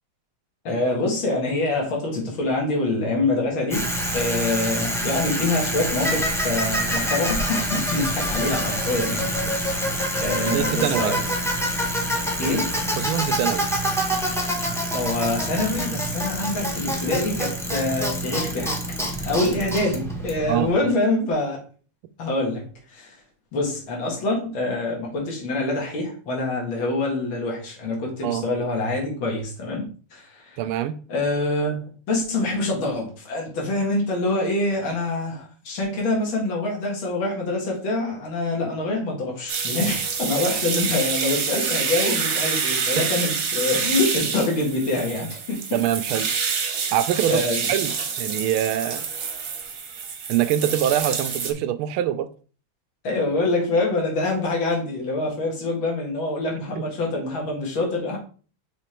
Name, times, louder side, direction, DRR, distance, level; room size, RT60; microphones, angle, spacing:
voice 1, 0.6-9.3 10.2-11.2 12.4-12.7 14.9-18.8 19.2-21.6 22.2-23.2 23.5-30.6 31.1-31.8 32.1-45.8 47.3-47.7 53.0-58.2, left 2 dB, 65° left, -1 dB, 2.6 m, -25 dB
Bicycle, 3.7-20.8, equal, ahead, 0.6 m, -26 dB
voice 2, 10.5-11.1 13.0-13.7 20.5-20.9 28.2-28.4 30.6-31.0 43.0-43.1 45.7-46.3 46.9-47.4 47.7-47.9 48.2-49.0 50.3-52.3 56.7-56.8, right 11 dB, 80° right, 11 dB, 1.4 m, -24 dB
sound 1, 39.5-51.5, right 6 dB, 50° right, 1.2 m, -27 dB
6.0 x 3.7 x 4.4 m, 0.40 s
omnidirectional pair, 2.4 m